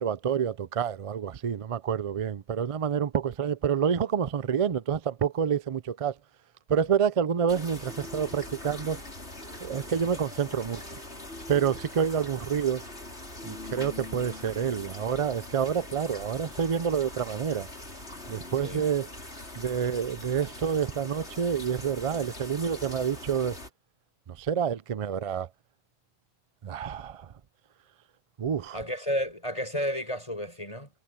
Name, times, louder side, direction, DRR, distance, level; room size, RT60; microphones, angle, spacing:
voice 1, 0.0-6.1 6.7-9.0 9.6-10.9 11.5-12.8 13.4-17.7 18.3-19.1 19.6-23.6 24.4-25.5 26.6-27.3 28.4-28.8, right 7 dB, 45° right, 0.5 m, -28 dB
sound 1, 7.5-23.7, left 2 dB, 75° left, 5.9 m, -42 dB
voice 2, 28.7-30.9, equal, 30° left, 7.4 m, -31 dB
omnidirectional pair, 1.1 m